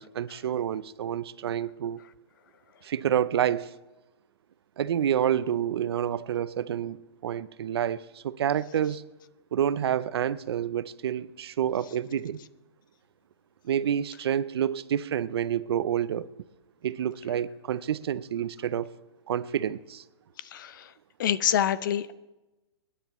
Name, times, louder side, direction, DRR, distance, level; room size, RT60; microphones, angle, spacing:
voice 1, 0.0-2.0 2.8-3.7 4.8-7.0 7.2-9.0 9.5-12.4 13.6-16.3 16.8-18.9 19.3-20.0, right 9 dB, 65° right, 0.5 m, -28 dB
voice 2, 20.5-20.8 21.2-22.1, left 10 dB, 50° left, 0.5 m, -26 dB
26.5 x 10.0 x 3.0 m
hypercardioid pair, 165°, 14 cm